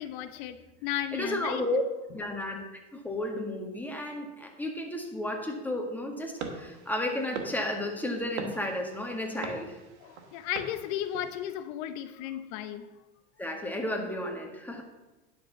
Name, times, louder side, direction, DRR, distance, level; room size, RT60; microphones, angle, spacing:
voice 1, 0.0-1.6 2.2-2.4 10.0-12.9, left 11 dB, 65° left, 10 dB, 0.8 m, -35 dB
voice 2, 1.1-1.8 2.1-9.8 13.4-14.8, left 1 dB, 5° left, 1 dB, 1.9 m, -33 dB
sound 1, 6.4-11.5, right 5 dB, 85° right, 1.7 m, -42 dB
11.0 x 4.6 x 6.9 m, 1.1 s
supercardioid pair, 105°, 34 cm